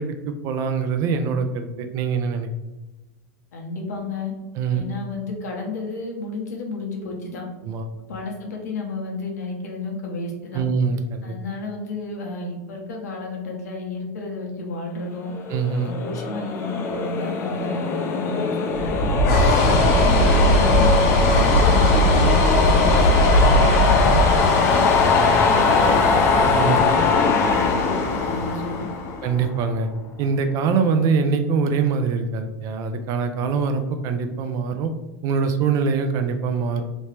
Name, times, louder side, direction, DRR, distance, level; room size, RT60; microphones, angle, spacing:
voice 1, 0.0-2.5 4.6-4.8 7.6-7.8 10.5-11.3 15.5-16.0 19.3-19.7 25.2-25.3 26.5-26.8 29.2-29.9 30.2-34.9 35.2-36.8, right 5 dB, 40° right, 7 dB, 0.4 m, -23 dB
voice 2, 3.5-4.3 4.7-7.4 8.1-10.6 11.2-15.3 15.8-18.9 19.5-24.9 25.4-26.1 26.6-28.9, left 2 dB, 90° left, 0 dB, 1.0 m, -31 dB
sound 1, 15.3-29.6, left 4 dB, 30° left, 0.5 m, -21 dB
sound 2, 18.7-29.2, equal, 65° left, 0.9 m, -20 dB
3.0 x 2.8 x 3.3 m, 1.1 s
supercardioid pair, 130°, 9 cm